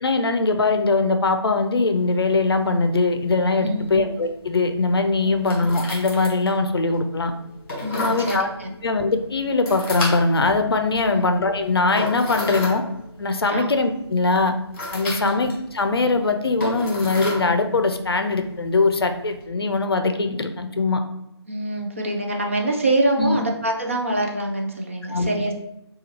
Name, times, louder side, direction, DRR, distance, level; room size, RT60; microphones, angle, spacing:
voice 1, 0.0-7.3 7.9-8.5 8.8-12.8 13.2-14.5 14.9-21.0 23.2-23.4 25.1-25.3, left 3 dB, 60° left, 6 dB, 0.5 m, -21 dB
sound 1, 1.9-19.4, left 1 dB, 30° left, 1.3 m, -35 dB
voice 2, 3.6-3.9 5.2-5.4 7.8-8.7 11.0-11.2 13.5-13.7 15.1-15.3 21.5-25.7, right 1 dB, 30° right, 1 dB, 0.4 m, -25 dB
6.1 x 2.3 x 2.9 m, 0.85 s
figure-of-eight pair, 165°, 15 cm